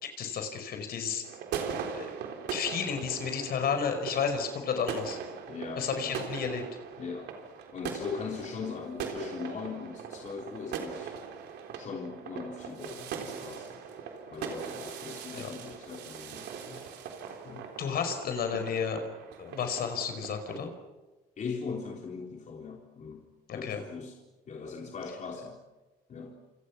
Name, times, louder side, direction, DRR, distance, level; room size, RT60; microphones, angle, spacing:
voice 1, 0.0-1.3 1.9-2.1 2.5-5.2 5.8-6.6 15.3-15.5 17.8-19.1 19.4-20.7 23.5-23.8, left 6 dB, 65° left, 7 dB, 5.0 m, -32 dB
sound 1, 1.2-20.7, right 7 dB, 85° right, 3.7 m, -40 dB
voice 2, 5.5-6.2 7.0-7.3 7.7-11.2 11.7-13.8 14.3-16.9 17.4-17.7 21.4-23.2 23.5-24.2 24.5-25.6 26.1-26.4, left 5 dB, 45° left, 0 dB, 3.7 m, -40 dB
28.0 x 27.5 x 6.1 m, 1.2 s
cardioid pair, 100°, 17 cm